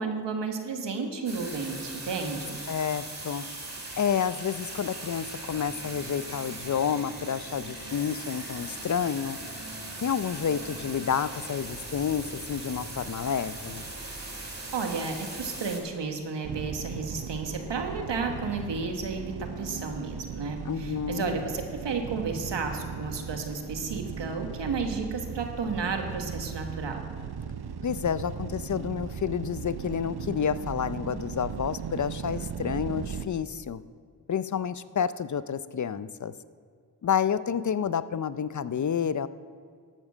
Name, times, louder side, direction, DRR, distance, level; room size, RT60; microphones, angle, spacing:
voice 1, 0.0-2.6 14.7-27.0, right 4 dB, 80° right, 4 dB, 1.5 m, -32 dB
sound 1, 1.3-15.8, right 2 dB, 40° right, 3.1 m, -39 dB
voice 2, 2.7-3.5 4.0-9.4 10.0-13.8 20.6-21.4 27.8-33.8 34.3-36.3 37.0-39.3, left 7 dB, 45° left, 15 dB, 0.5 m, -29 dB
sound 2, 16.4-33.3, right 7 dB, 65° right, 0.7 m, -37 dB
11.5 x 7.1 x 7.3 m, 2.1 s
cardioid pair, 40°, 42 cm